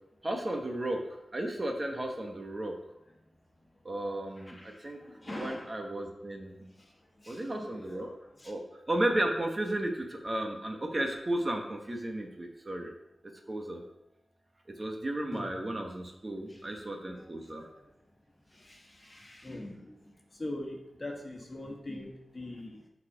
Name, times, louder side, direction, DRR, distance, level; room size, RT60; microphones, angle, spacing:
voice 1, 0.2-1.0 1.3-2.7 3.8-5.0 5.3-6.6 7.3-8.1 8.4-8.6 8.9-12.9 13.5-13.8 14.8-17.6, right 1 dB, 30° right, 2 dB, 1.1 m, -34 dB
voice 2, 4.4-5.7 6.7-6.9 7.2-8.5 15.3-15.5 16.5-16.7 17.1-17.8 18.5-22.9, left 1 dB, 30° left, 0 dB, 1.6 m, -43 dB
9.4 x 4.3 x 5.0 m, 0.87 s
wide cardioid pair, 95°, 0 cm